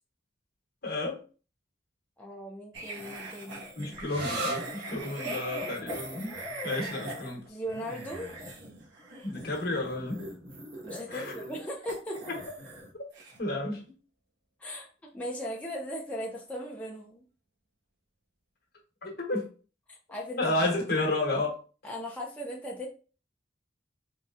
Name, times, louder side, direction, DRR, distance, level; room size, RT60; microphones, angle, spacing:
voice 1, 0.8-1.2 3.8-6.4 6.6-7.4 9.2-10.3 11.1-11.3 12.3-12.4 13.4-13.8 19.0-19.5 20.4-21.6, left 2 dB, 55° left, 1 dB, 1.2 m, -31 dB
voice 2, 2.2-3.7 7.5-8.3 10.8-12.2 14.6-14.9 15.1-17.2 19.9-20.7 21.8-22.9, equal, 10° left, -2 dB, 0.5 m, -38 dB
sound 1, 2.7-12.9 13.1-13.4, right 1 dB, 90° right, 1.3 m, -41 dB
sound 2, 4.1-11.4, right 3 dB, 55° right, 1.4 m, -42 dB
4.0 x 3.2 x 2.4 m, 0.36 s
head